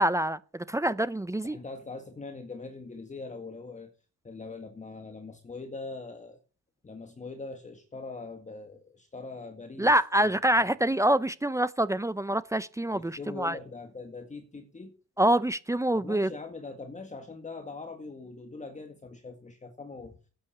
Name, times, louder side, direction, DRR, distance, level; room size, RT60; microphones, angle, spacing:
voice 1, 0.0-1.6 9.8-13.6 15.2-16.3, right 1 dB, 10° right, 0.7 m, -26 dB
voice 2, 1.4-3.9 4.2-6.4 6.8-9.9 10.2-10.6 12.9-14.9 15.9-20.1, left 3 dB, 25° left, 2.0 m, -42 dB
12.5 x 9.0 x 6.8 m
cardioid pair, 90°, 30 cm